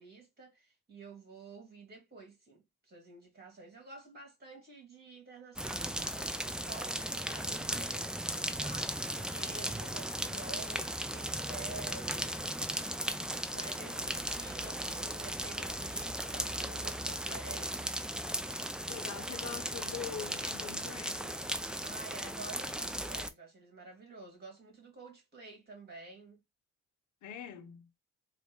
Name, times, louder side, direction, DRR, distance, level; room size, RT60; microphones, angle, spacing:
voice 1, 0.0-8.0 8.6-12.5 13.5-18.0 21.8-26.4, right 3 dB, 30° right, 2.5 m, -50 dB
sound 1, 5.6-23.3, equal, 5° right, 0.4 m, -37 dB
voice 2, 18.9-21.7 27.2-27.9, left 8 dB, 70° left, 0.9 m, -44 dB
4.0 x 2.4 x 3.6 m
cardioid pair, 90°, 30 cm